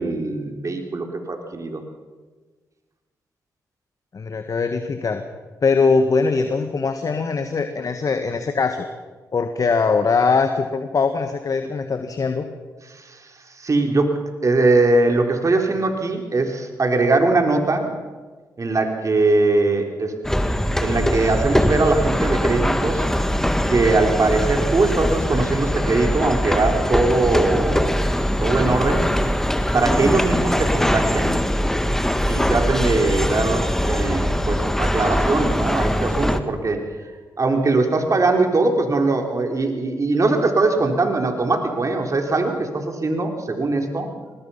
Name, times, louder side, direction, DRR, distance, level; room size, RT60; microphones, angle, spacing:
voice 1, 0.0-1.8 12.9-13.3 13.6-14.1 14.4-17.9 18.6-20.1 20.8-23.0 23.7-28.0 28.4-29.1 29.7-31.4 32.3-36.8 37.4-44.1, right 3 dB, 45° right, 4 dB, 3.9 m, -21 dB
voice 2, 4.1-5.2 5.6-8.9 9.3-12.5, left 4 dB, 50° left, 7 dB, 1.6 m, -21 dB
sound 1, 20.2-36.4, equal, 5° left, 1.8 m, -21 dB
24.0 x 20.0 x 5.8 m, 1.4 s
supercardioid pair, 45°, 8 cm